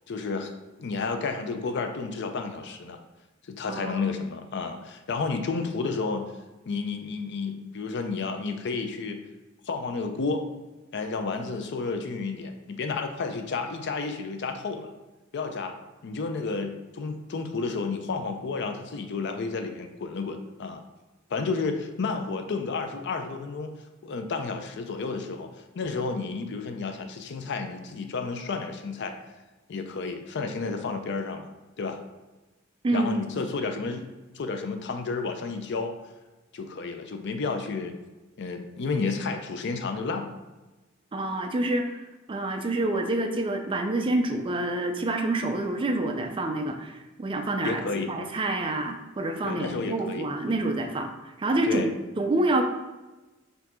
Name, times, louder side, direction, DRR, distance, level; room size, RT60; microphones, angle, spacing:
voice 1, 0.1-0.5 0.8-3.0 3.5-6.3 6.7-9.2 9.7-10.4 10.9-14.9 15.3-15.8 16.0-20.8 21.3-23.7 24.0-25.5 25.8-29.2 29.7-31.5 31.8-32.0 32.9-34.1 34.3-35.9 36.5-37.9 38.4-40.3 47.6-48.1 49.4-50.6 51.7-51.9, left 4 dB, 60° left, 6 dB, 0.5 m, -31 dB
voice 2, 3.7-4.0 32.8-33.5 41.1-41.9 42.3-47.8 48.1-51.1 51.4-51.9 52.2-52.6, right 2 dB, 25° right, 5 dB, 0.4 m, -27 dB
4.3 x 2.7 x 4.2 m, 1.1 s
head